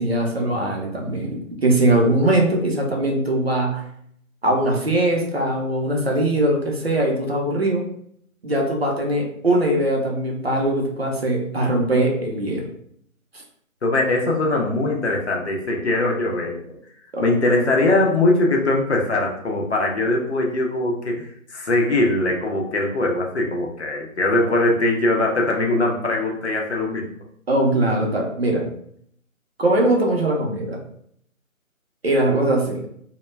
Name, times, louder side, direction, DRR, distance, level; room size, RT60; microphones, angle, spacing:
voice 1, 0.0-3.8 4.4-7.8 8.4-12.7 17.1-17.3 24.4-24.5 27.5-28.7 29.6-30.8 32.0-32.9, right 1 dB, 45° right, -1 dB, 0.6 m, -21 dB
voice 2, 13.8-16.8 17.2-27.1, left 2 dB, 50° left, -1 dB, 0.6 m, -21 dB
2.2 x 2.1 x 3.0 m, 0.67 s
figure-of-eight pair, 165°, 42 cm